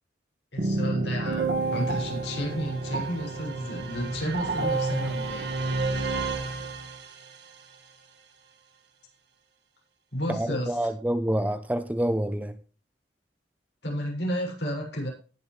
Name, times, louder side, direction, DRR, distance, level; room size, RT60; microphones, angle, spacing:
voice 1, 0.5-5.5 10.1-10.8 13.8-15.1, equal, 70° left, 0 dB, 6.6 m, -32 dB
sound 1, 0.6-7.4, right 3 dB, 65° right, 2.0 m, -29 dB
voice 2, 10.3-12.5, right 1 dB, 10° right, 10 dB, 0.8 m, -27 dB
18.5 x 7.8 x 3.3 m, 0.36 s
head